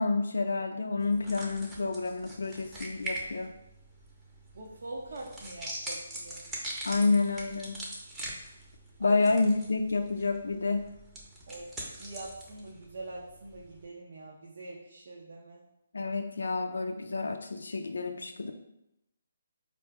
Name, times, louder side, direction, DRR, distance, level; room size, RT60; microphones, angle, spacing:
voice 1, 0.0-3.5 6.8-7.8 9.0-10.9 15.9-18.5, left 3 dB, 75° left, 6 dB, 0.3 m, -29 dB
sound 1, 1.0-13.8, right 1 dB, 10° right, 0.7 m, -43 dB
voice 2, 4.5-6.5 9.0-9.2 11.5-15.7, right 2 dB, 60° right, -3 dB, 0.7 m, -44 dB
4.4 x 2.6 x 3.4 m, 0.85 s
figure-of-eight pair, 150°, 0 cm